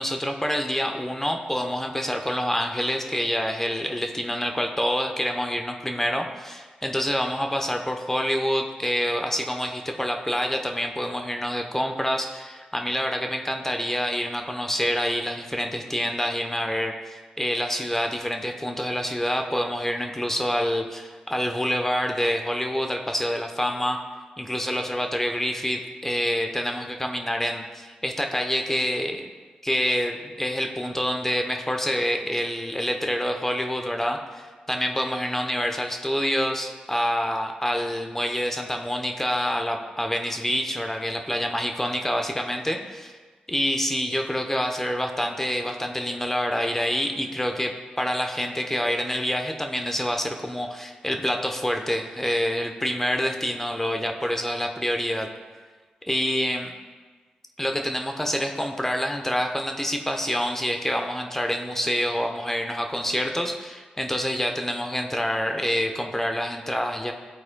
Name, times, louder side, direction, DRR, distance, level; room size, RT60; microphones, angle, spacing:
voice 1, 0.0-24.0 24.4-29.3 29.6-43.2 43.5-55.3 56.1-56.7 57.6-67.1, equal, 10° left, 4 dB, 0.8 m, -27 dB
12.5 x 4.2 x 2.2 m, 1.4 s
supercardioid pair, 45°, 3 cm